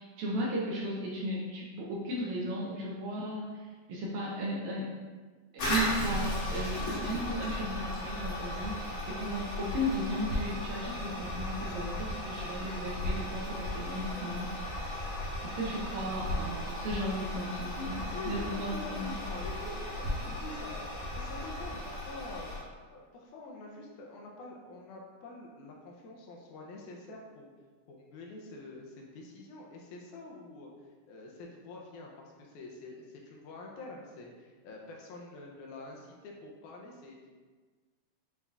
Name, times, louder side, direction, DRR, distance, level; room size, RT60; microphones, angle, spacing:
voice 1, 0.0-4.9 5.5-14.5 15.4-19.2, equal, 75° right, -4 dB, 1.8 m, -35 dB
Toilet flush, 5.6-22.6, left 1 dB, 60° left, 1.9 m, -36 dB
voice 2, 17.9-22.5 22.9-27.5 27.9-30.7 31.1-37.3, left 2 dB, 80° left, -1 dB, 1.9 m, -46 dB
7.4 x 2.7 x 2.3 m, 1.4 s
omnidirectional pair, 3.6 m